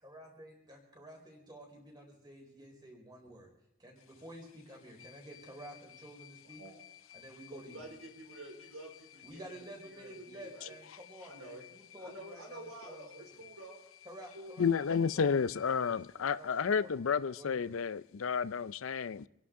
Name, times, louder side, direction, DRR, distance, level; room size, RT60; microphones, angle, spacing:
voice 1, 0.0-3.5 3.8-6.6 7.1-7.8 9.2-13.2 14.0-15.2 15.9-16.9 17.4-17.8, equal, 20° right, 4.3 m, -51 dB
voice 2, 7.5-10.8 11.2-11.6 12.0-13.8 14.3-14.5, right 1 dB, 90° right, 4.4 m, -49 dB
voice 3, 14.6-19.3, left 6 dB, 70° left, 0.5 m, -31 dB
27.0 x 11.5 x 3.7 m
head